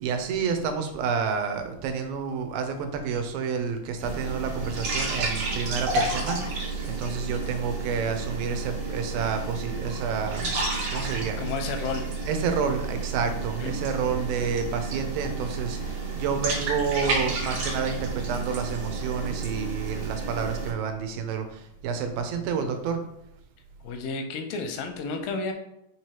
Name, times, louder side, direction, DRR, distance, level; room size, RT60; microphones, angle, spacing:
voice 1, 0.0-10.5 10.9-11.4 12.3-23.0, right 6 dB, 90° right, 7 dB, 2.4 m, -29 dB
sound 1, 4.0-20.7, right 3 dB, 55° right, 1.7 m, -31 dB
voice 2, 11.4-12.1 13.6-13.7 23.8-25.5, left 4 dB, 85° left, 6 dB, 2.4 m, -31 dB
5.7 x 3.1 x 2.9 m, 0.79 s
omnidirectional pair, 4.0 m